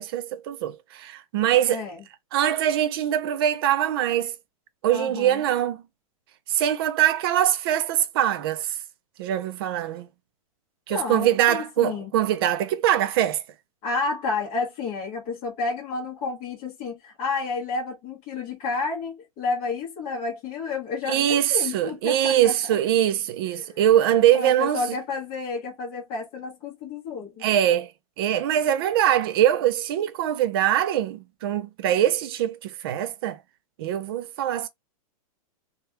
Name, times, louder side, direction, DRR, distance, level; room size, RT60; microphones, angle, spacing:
voice 1, 0.0-1.8 2.3-4.3 4.8-5.8 6.5-8.7 9.2-10.1 10.9-13.4 21.1-24.8 27.4-27.9 28.2-33.4 33.8-34.7, right 11 dB, 40° right, 0.5 m, -23 dB
voice 2, 1.7-2.0 4.9-5.4 10.9-12.1 13.8-22.8 23.4-23.8 24.3-27.4, left 4 dB, 30° left, 1.1 m, -31 dB
3.2 x 2.3 x 2.8 m
supercardioid pair, 160°, 19 cm